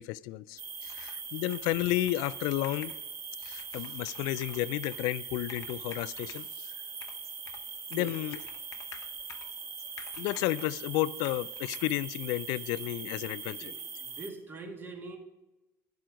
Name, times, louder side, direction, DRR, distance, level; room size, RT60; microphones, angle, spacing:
voice 1, 0.0-2.9 3.4-6.5 7.9-8.4 10.2-13.7, left 17 dB, 85° left, 0.3 m, -32 dB
sound 1, 0.6-14.3, right 6 dB, 50° right, 1.3 m, -41 dB
Computer keyboard, 0.8-1.2 1.5-3.0 3.4-5.0 5.4-6.5 7.0-7.7 7.9-9.6 10.0-10.7 11.2-11.8, left 9 dB, 55° left, 0.8 m, -50 dB
voice 2, 13.6-15.2, right 3 dB, 30° right, 1.9 m, -43 dB
10.5 x 7.7 x 5.1 m
cardioid pair, 100°, 7 cm